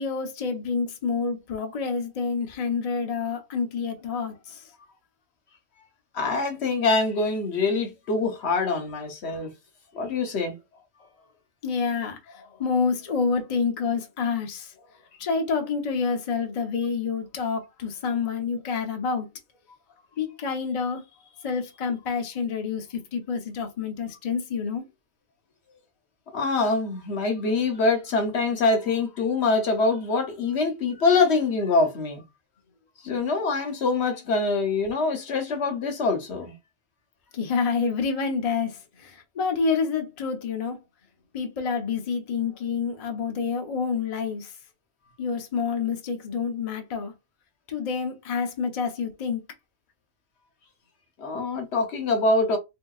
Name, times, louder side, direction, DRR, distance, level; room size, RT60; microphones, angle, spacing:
voice 1, 0.0-4.7 11.6-14.7 15.2-19.3 20.2-21.0 21.4-24.8 37.3-40.8 41.3-44.5 45.2-47.1 47.7-49.4, left 5 dB, 40° left, 0.6 m, -28 dB
voice 2, 6.1-9.5 9.9-10.6 26.3-32.2 33.0-36.5 51.2-52.6, left 3 dB, 65° left, 1.0 m, -24 dB
3.4 x 2.8 x 2.3 m
omnidirectional pair, 1.3 m